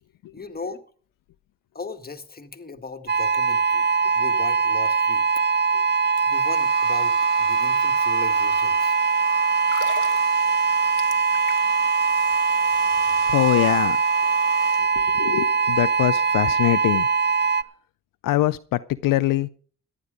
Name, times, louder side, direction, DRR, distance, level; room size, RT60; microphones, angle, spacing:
voice 1, 0.3-0.8 1.7-3.9 4.2-5.2 6.3-9.0, left 4 dB, 30° left, 6 dB, 1.9 m, -37 dB
sound 1, 3.1-17.6, right 5 dB, 30° right, 0.7 m, -21 dB
Domestic sounds home sounds, 6.2-15.3, right 2 dB, 90° right, 2.8 m, -42 dB
sound 2, 9.6-11.9 12.2-12.4, left 9 dB, 65° left, 1.2 m, -38 dB
voice 2, 13.3-14.0 14.8-17.1 18.2-19.5, left 16 dB, 80° left, 14 dB, 0.5 m, -23 dB
14.5 x 10.0 x 5.1 m, 0.43 s
supercardioid pair, 55°, 33 cm